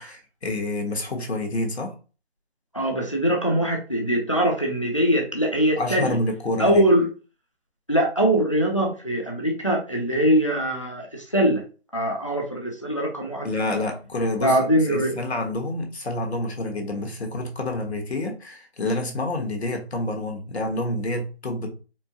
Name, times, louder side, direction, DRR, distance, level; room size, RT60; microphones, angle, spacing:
voice 1, 0.0-1.9 5.8-6.8 13.4-14.6 14.9-21.7, left 2 dB, 80° left, 3 dB, 1.2 m, -28 dB
voice 2, 2.7-6.2 6.6-7.1 7.9-11.6 11.9-13.8 14.4-15.2, right 1 dB, 30° left, 1 dB, 0.5 m, -22 dB
4.3 x 2.0 x 2.8 m, 0.34 s
figure-of-eight pair, 170°, 32 cm